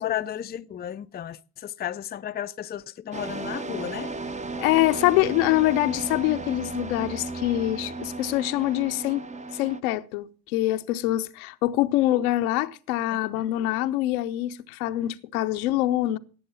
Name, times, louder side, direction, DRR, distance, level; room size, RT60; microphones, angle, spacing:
voice 1, 0.0-4.2, left 10 dB, 20° left, 0.5 m, -33 dB
sound 1, 3.1-9.8, right 3 dB, 15° right, 0.7 m, -35 dB
voice 2, 4.6-9.2 9.5-16.2, left 15 dB, 70° left, 0.8 m, -25 dB
16.5 x 7.7 x 5.6 m
figure-of-eight pair, 45°, 45 cm